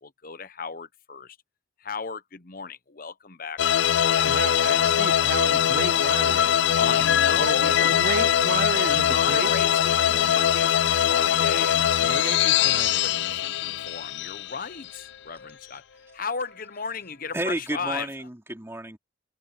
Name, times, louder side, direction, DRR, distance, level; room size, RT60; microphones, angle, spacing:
voice 1, 0.0-1.4 1.8-3.6 4.1-4.5 6.8-8.0 8.9-11.9 12.6-15.8 16.1-18.1, left 5 dB, 50° left, 1.0 m, -35 dB
sound 1, 3.6-15.0, left 10 dB, 65° left, 0.4 m, -22 dB
voice 2, 4.2-7.0 7.3-9.5 12.0-13.4, right 6 dB, 55° right, 0.4 m, -34 dB
sound 2, 12.5-17.7, left 2 dB, 90° left, 3.1 m, -54 dB
voice 3, 17.3-19.0, right 1 dB, 15° right, 2.9 m, -31 dB
head